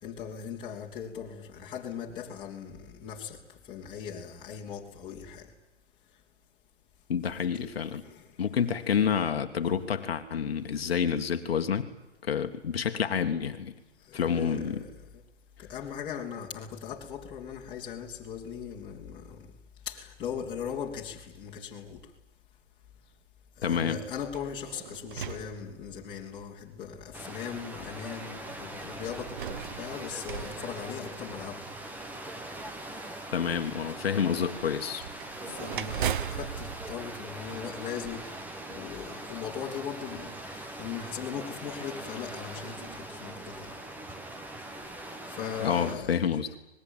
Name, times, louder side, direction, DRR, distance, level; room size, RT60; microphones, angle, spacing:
voice 1, 0.0-5.5 7.4-8.4 14.0-15.2 15.6-19.5 19.8-22.0 23.6-31.7 33.1-33.2 35.4-38.3 38.7-43.7 44.8-44.9 45.3-46.2, left 8 dB, 15° left, 3.0 m, -39 dB
voice 2, 7.1-8.0 8.4-11.9 12.2-13.7 14.1-14.8 23.6-24.0 33.3-35.1 45.6-46.6, left 7 dB, 55° left, 1.8 m, -28 dB
sound 1, 24.3-26.3 27.1-27.2 29.0-31.6 35.0-38.0, right 9 dB, 45° right, 0.9 m, -38 dB
sound 2, 27.1-46.0, right 1 dB, 5° right, 1.3 m, -41 dB
26.0 x 20.5 x 9.1 m
hypercardioid pair, 140°, 35 cm